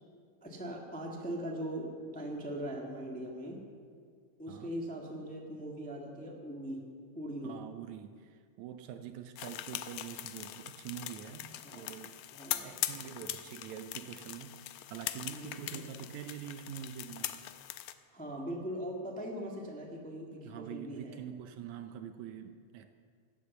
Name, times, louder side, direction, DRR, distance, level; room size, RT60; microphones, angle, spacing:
voice 1, 0.4-3.6 4.4-6.9 7.1-7.6 11.5-12.0 12.3-13.0 15.3-16.1 18.1-21.2, equal, 5° left, -1 dB, 0.7 m, -41 dB
voice 2, 7.4-12.2 12.6-17.5 20.4-22.9, right 9 dB, 75° right, 8 dB, 1.9 m, -45 dB
sound 1, 9.4-17.9, left 13 dB, 80° left, 1.9 m, -41 dB
16.5 x 8.4 x 7.0 m, 2.1 s
omnidirectional pair, 3.5 m